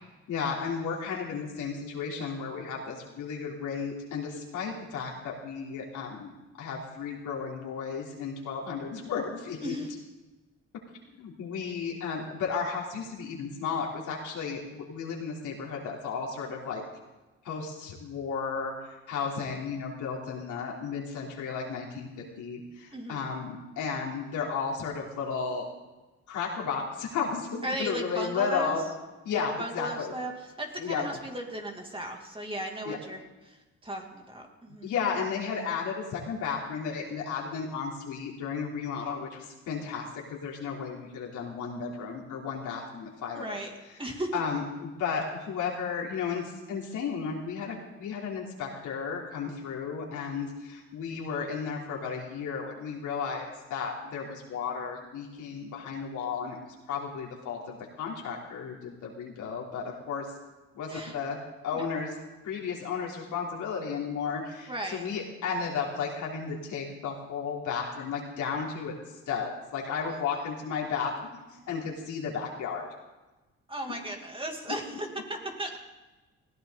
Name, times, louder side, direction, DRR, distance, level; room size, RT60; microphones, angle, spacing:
voice 1, 0.3-6.3 6.6-9.8 11.2-16.8 17.4-18.7 19.1-25.6 26.3-28.9 29.3-30.1 30.8-31.0 32.9-33.0 34.8-43.6 44.3-56.6 56.9-60.3 60.7-62.2 62.4-68.9 69.3-72.9 74.7-74.8, left 6 dB, 80° left, -2 dB, 3.6 m, -34 dB
voice 2, 22.9-23.3 27.6-28.8 29.3-34.9 43.4-43.7 44.0-44.3 60.9-61.2 61.7-61.8 64.7-65.1 70.3-70.4 73.7-75.8, right 1 dB, 15° right, 1 dB, 2.7 m, -36 dB
20.0 x 16.0 x 4.0 m, 1.1 s
cardioid pair, 90°, 30 cm